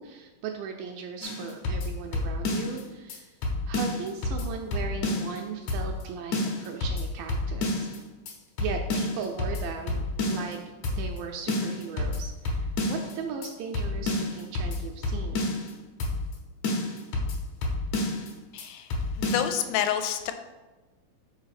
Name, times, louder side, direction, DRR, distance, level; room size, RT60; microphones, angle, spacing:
voice 1, 0.0-3.3 3.7-7.9 8.6-10.0 10.3-10.6 10.9-15.4, right 6 dB, 80° right, 3 dB, 2.1 m, -37 dB
sound 1, 1.2-2.8 3.1-3.2 3.4-5.4 5.7-6.0 6.3-8.0 8.3-8.4 8.6-10.5 10.8-11.2 11.5-13.1 13.4-13.5 13.7-15.7 16.0-16.4 16.6-18.3 18.6-18.7 18.9-19.5, left 2 dB, 70° left, 1.8 m, -29 dB
voice 2, 18.5-18.9 19.2-20.3, left 10 dB, 85° left, 8 dB, 2.3 m, -28 dB
5.3 x 4.0 x 5.7 m, 1.2 s
omnidirectional pair, 4.2 m